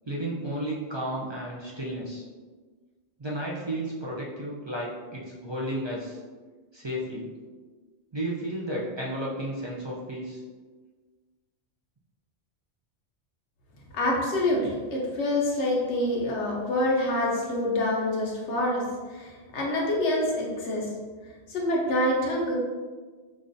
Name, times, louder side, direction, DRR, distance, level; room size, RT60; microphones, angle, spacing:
voice 1, 0.1-2.2 3.2-6.2 6.7-7.3 8.1-10.4, right 1 dB, 40° right, -4 dB, 0.4 m, -33 dB
voice 2, 13.9-18.8 19.1-20.9 21.5-22.5, left 1 dB, 85° left, -2 dB, 1.1 m, -26 dB
5.2 x 2.4 x 2.6 m, 1.4 s
omnidirectional pair, 1.1 m